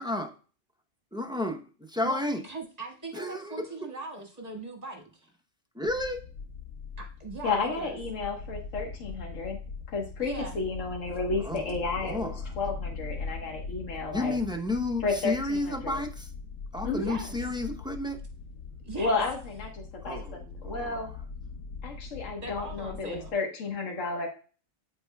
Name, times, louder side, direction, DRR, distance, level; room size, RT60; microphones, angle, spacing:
voice 1, 1.1-1.6 1.9-2.4 3.1-3.5 5.8-6.2 11.4-11.6 12.0-12.3 14.1-16.3 16.7-18.2 20.0-20.3 20.6-21.0, left 2 dB, 5° right, 4 dB, 0.4 m, -31 dB
voice 2, 2.0-5.3 7.0-7.9 10.2-10.6 17.0-17.6 18.8-19.2 22.4-23.3, right 3 dB, 30° right, 2 dB, 1.6 m, -40 dB
sound 1, 5.9-23.3, left 4 dB, 90° left, 1.1 m, -41 dB
voice 3, 7.4-9.6 9.9-14.4 15.0-16.0 16.8-17.1 19.0-20.4 20.6-21.1 21.8-24.3, left 3 dB, 75° left, 1 dB, 1.6 m, -32 dB
12.5 x 4.2 x 2.2 m, 0.38 s
omnidirectional pair, 1.3 m